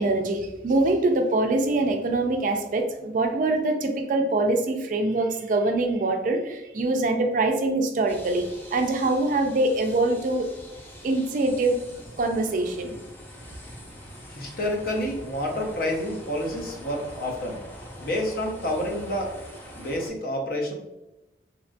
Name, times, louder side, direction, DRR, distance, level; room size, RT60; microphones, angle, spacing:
voice 1, 0.0-8.4 8.7-10.5 11.0-11.8 12.2-13.0, right 2 dB, 45° right, 5 dB, 0.3 m, -24 dB
sound 1, 8.1-20.1, equal, 10° left, 0.5 m, -44 dB
voice 2, 14.3-17.6 18.0-19.3 19.7-20.7, left 1 dB, 55° left, 1 dB, 0.6 m, -29 dB
2.8 x 2.3 x 2.4 m, 0.95 s
head